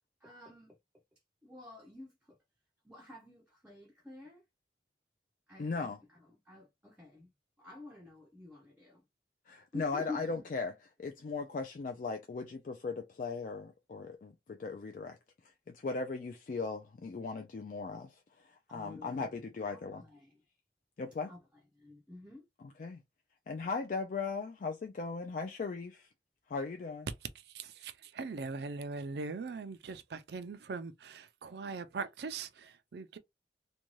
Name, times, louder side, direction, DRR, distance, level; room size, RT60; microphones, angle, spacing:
voice 1, 0.2-0.8 1.4-2.4 2.8-4.4 5.5-5.9 6.5-7.3 7.6-9.0 9.7-10.3 18.7-20.3 21.2-21.4 21.8-22.4, left 3 dB, 5° right, 0.5 m, -48 dB
voice 2, 5.6-6.0 9.5-10.7 11.0-15.2 15.7-20.0 21.0-21.3 22.6-23.0 23.5-26.1 26.5-27.1, left 4 dB, 45° left, 0.3 m, -38 dB
voice 3, 27.3-33.2, right 4 dB, 65° right, 0.4 m, -41 dB
2.6 x 2.2 x 3.0 m
head